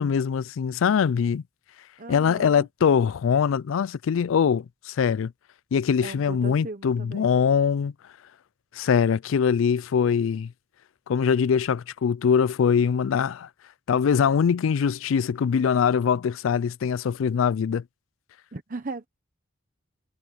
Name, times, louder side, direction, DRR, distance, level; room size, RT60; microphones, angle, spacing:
voice 1, 0.0-1.4 2.1-5.3 5.7-7.9 8.7-10.5 11.1-13.5 13.9-17.8, left 7 dB, 75° left, 0.3 m, -22 dB
voice 2, 2.0-2.7 6.0-7.3 18.5-19.1, right 3 dB, 40° right, 0.9 m, -37 dB
head